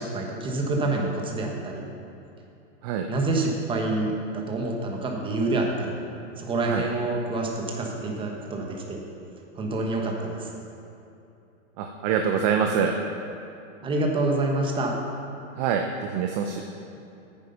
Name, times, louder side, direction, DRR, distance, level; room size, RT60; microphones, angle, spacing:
voice 1, 0.0-1.8 3.1-6.0 6.4-9.0 9.6-10.5 13.8-14.9, right 2 dB, 15° right, 1 dB, 1.2 m, -27 dB
voice 2, 11.8-12.9 15.6-16.6, right 7 dB, 35° right, 4 dB, 0.6 m, -25 dB
9.1 x 8.3 x 5.6 m, 2.8 s
hypercardioid pair, 145°, 38 cm